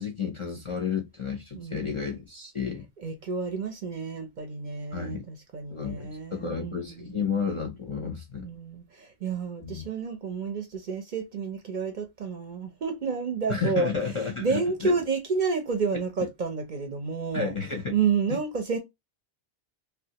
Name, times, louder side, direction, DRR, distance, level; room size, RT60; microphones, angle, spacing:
voice 1, 0.0-2.9 4.9-5.2 5.7-8.4 9.6-9.8 13.5-14.9 17.3-17.9, left 5 dB, 40° left, 0.5 m, -31 dB
voice 2, 1.5-2.0 3.0-7.2 8.4-13.9 14.2-17.5 17.9-18.8, right 5 dB, 55° right, 0.6 m, -30 dB
3.2 x 2.3 x 2.8 m
omnidirectional pair, 1.1 m